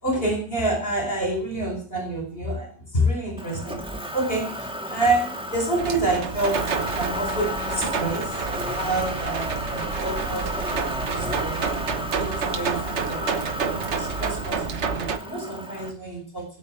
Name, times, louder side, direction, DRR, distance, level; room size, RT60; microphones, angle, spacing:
voice 1, 0.0-6.7 7.0-8.3 8.7-11.7 12.1-13.4 13.9-16.5, right 2 dB, 55° left, 3 dB, 5.0 m, -28 dB
Motor vehicle (road), 3.4-15.9, equal, 5° right, 2.0 m, -33 dB
sound 1, 5.8-15.2, right 5 dB, 80° right, 1.5 m, -29 dB
18.5 x 8.2 x 7.6 m, 0.41 s
omnidirectional pair, 1.1 m